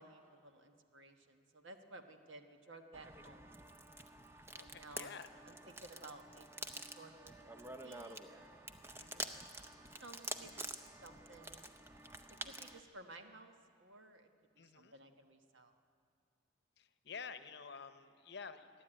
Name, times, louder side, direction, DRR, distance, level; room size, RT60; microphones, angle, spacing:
voice 1, 0.0-3.5 4.5-5.1 5.5-8.6 9.1-9.2 9.9-10.7 11.0-11.8 12.4-14.3 14.7-15.7, right 2 dB, 75° right, 6 dB, 1.3 m, -56 dB
sound 1, 2.9-12.8, right 2 dB, 10° right, 0.6 m, -48 dB
voice 2, 4.5-5.3 9.0-9.3 14.6-14.9 16.8-18.7, left 5 dB, 55° left, 11 dB, 0.8 m, -50 dB
28.0 x 10.5 x 8.9 m, 2.4 s
head